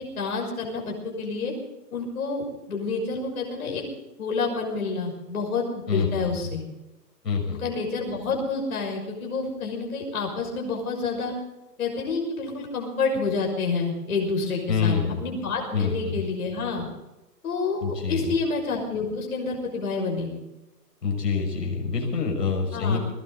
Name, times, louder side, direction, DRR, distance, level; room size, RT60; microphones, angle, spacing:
voice 1, 0.0-1.5 1.9-3.8 4.2-6.6 7.5-11.3 11.8-16.9 17.4-20.3 22.7-23.0, left 4 dB, 60° left, 1 dB, 6.2 m, -28 dB
voice 2, 5.9-6.3 7.2-7.6 14.7-15.2 15.7-16.2 17.8-18.3 21.0-23.0, left 5 dB, 75° left, 1 dB, 6.4 m, -26 dB
20.5 x 17.0 x 4.0 m, 0.96 s
hypercardioid pair, 165°, 49 cm